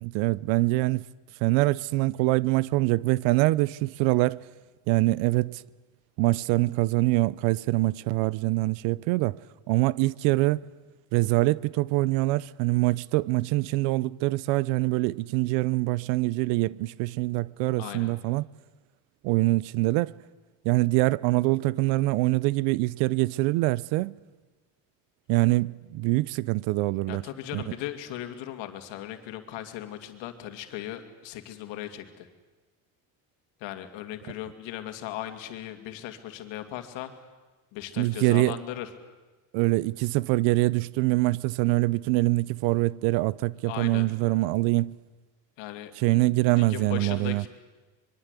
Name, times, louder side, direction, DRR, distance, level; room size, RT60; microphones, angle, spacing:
voice 1, 0.0-1.1 1.4-4.4 4.9-5.6 6.2-9.4 9.7-10.6 11.1-18.4 19.2-20.1 20.6-24.1 25.3-27.2 27.5-27.6 38.0-38.6 39.5-45.0 46.0-47.4, right 20 dB, 80° right, 0.7 m, -24 dB
voice 2, 17.8-18.1 27.1-32.3 33.6-37.3 37.7-38.9 43.6-44.1 45.6-45.9 46.4-47.5, left 13 dB, 75° left, 2.6 m, -38 dB
25.5 x 22.5 x 8.3 m
supercardioid pair, 85°, 45 cm